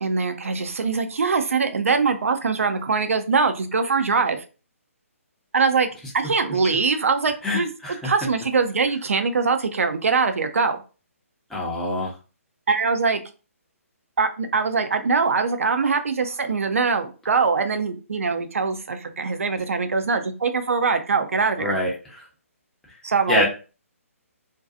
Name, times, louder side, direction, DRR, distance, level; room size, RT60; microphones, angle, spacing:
voice 1, 0.0-4.4 5.5-5.9 6.1-7.7 8.0-10.8 12.7-13.2 14.2-21.8 23.0-23.5, right 4 dB, 65° right, 8 dB, 0.5 m, -22 dB
voice 2, 7.4-8.1 11.5-12.1 21.6-21.9 23.3-23.5, left 1 dB, 5° left, -5 dB, 0.7 m, -24 dB
2.5 x 2.2 x 2.5 m, 0.34 s
figure-of-eight pair, 140°, 8 cm